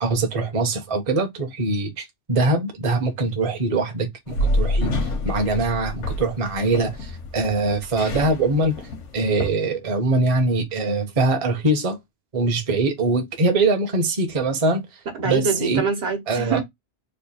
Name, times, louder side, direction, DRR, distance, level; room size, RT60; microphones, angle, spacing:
voice 1, 0.0-4.9 5.2-8.8 9.1-12.0 12.3-14.8 15.2-15.8 16.3-16.6, right 2 dB, 35° right, 0.7 m, -22 dB
sound 1, 4.3-9.5, left 1 dB, 85° left, 1.2 m, -27 dB
voice 2, 15.1-16.6, right 5 dB, 65° right, 1.2 m, -24 dB
3.2 x 2.3 x 3.9 m
omnidirectional pair, 1.2 m